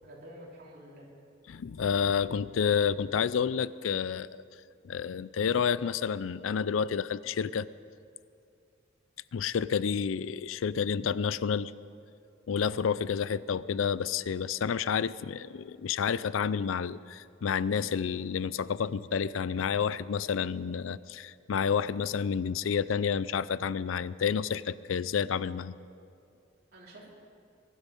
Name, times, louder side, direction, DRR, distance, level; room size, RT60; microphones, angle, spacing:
voice 1, 0.0-1.1 26.7-27.1, equal, 55° right, -3 dB, 3.5 m, -49 dB
voice 2, 1.5-4.3 4.8-7.7 9.3-11.7 12.5-25.8, left 7 dB, 90° left, 18 dB, 0.4 m, -29 dB
22.5 x 12.0 x 5.3 m, 2.5 s
head